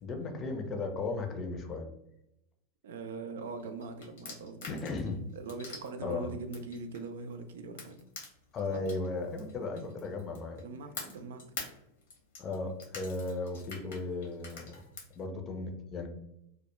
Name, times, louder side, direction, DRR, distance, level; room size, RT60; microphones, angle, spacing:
voice 1, 0.0-1.9 4.7-5.2 6.0-6.3 8.5-10.6 12.4-14.7 15.2-16.1, left 3 dB, 30° left, 4 dB, 0.5 m, -36 dB
voice 2, 2.8-5.0 5.3-8.0 8.7-8.8 10.5-11.4, right 3 dB, 80° right, 7 dB, 0.3 m, -41 dB
sound 1, 3.6-7.3 7.8-10.6 10.9-15.2, left 4 dB, 75° left, 0.8 m, -45 dB
2.2 x 2.1 x 2.9 m, 0.80 s
hypercardioid pair, 105°, 0 cm